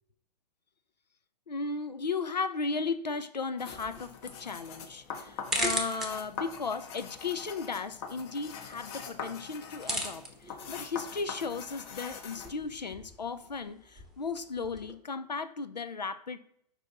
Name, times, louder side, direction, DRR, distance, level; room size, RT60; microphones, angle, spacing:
voice 1, 1.5-16.6, left 4 dB, 85° left, 11 dB, 0.5 m, -35 dB
sound 1, 3.6-12.5, left 6 dB, 40° left, 0.9 m, -43 dB
sound 2, 3.7-14.9, equal, ahead, 0.8 m, -40 dB
5.3 x 4.3 x 4.4 m, 0.70 s
figure-of-eight pair, 105°, 21 cm